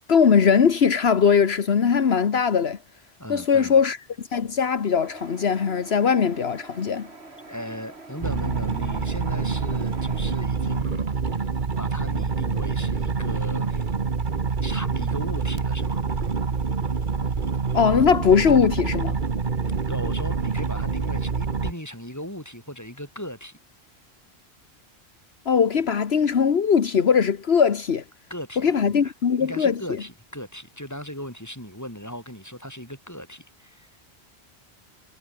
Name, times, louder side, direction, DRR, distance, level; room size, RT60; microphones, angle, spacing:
voice 1, 0.1-2.8 3.3-4.0 4.3-7.1 17.7-19.2 25.5-28.0 28.6-29.8, left 6 dB, 75° left, 1.4 m, -20 dB
voice 2, 3.2-3.8 7.5-11.1 11.4-11.5 11.8-13.9 14.6-16.0 19.9-23.6 28.3-29.1 29.4-33.9, equal, 15° left, 7.9 m, -37 dB
sound 1, 5.0-10.4, right 3 dB, 80° right, 3.5 m, -45 dB
sound 2, 8.2-21.7, right 5 dB, 50° right, 1.5 m, -26 dB
omnidirectional pair, 1.1 m